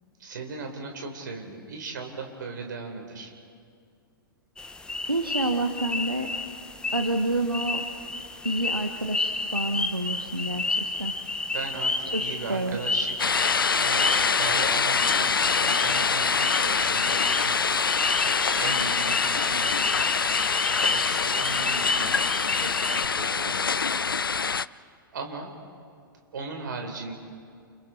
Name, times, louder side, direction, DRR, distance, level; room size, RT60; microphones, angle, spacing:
voice 1, 0.2-3.3 11.5-13.1 13.8-15.3 15.6-17.6 18.6-20.0 20.8-22.1 22.6-23.6 25.1-25.5 26.3-27.1, right 4 dB, 60° right, 3 dB, 4.2 m, -37 dB
sound 1, 4.6-23.1, left 3 dB, 5° left, 1.2 m, -31 dB
voice 2, 5.1-6.3 6.9-7.8 8.4-11.1 12.1-12.2 12.5-12.8, right 2 dB, 90° right, 5 dB, 1.2 m, -28 dB
sound 2, 13.2-24.7, left 5 dB, 75° left, 0.5 m, -25 dB
29.5 x 29.0 x 4.4 m, 2.3 s
figure-of-eight pair, 105°, 12 cm